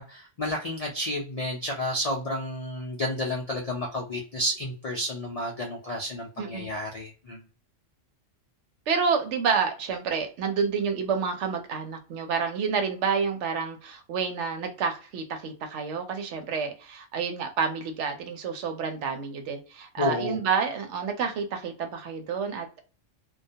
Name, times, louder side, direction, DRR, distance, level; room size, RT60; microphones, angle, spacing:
voice 1, 0.0-7.4 20.0-20.4, left 1 dB, 60° left, -1 dB, 0.4 m, -31 dB
voice 2, 8.9-22.8, right 6 dB, 70° right, 6 dB, 0.8 m, -29 dB
2.2 x 2.1 x 2.6 m, 0.36 s
omnidirectional pair, 1.3 m